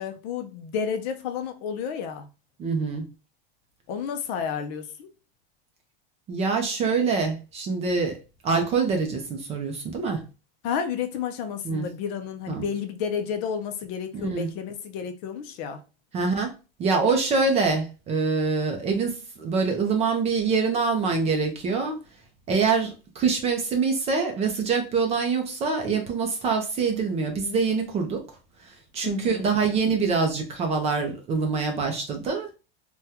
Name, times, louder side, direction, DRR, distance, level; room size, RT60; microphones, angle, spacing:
voice 1, 0.0-2.3 3.9-5.1 10.6-15.8 29.0-29.5, left 7 dB, 45° left, 0.5 m, -31 dB
voice 2, 2.6-3.1 6.3-8.2 8.4-10.2 11.6-11.9 12.5-12.6 14.1-14.5 16.1-16.5 16.8-22.0 22.5-28.2 28.6-32.5, right 4 dB, 20° right, 0.5 m, -25 dB
3.5 x 2.2 x 2.8 m
supercardioid pair, 150°, 30 cm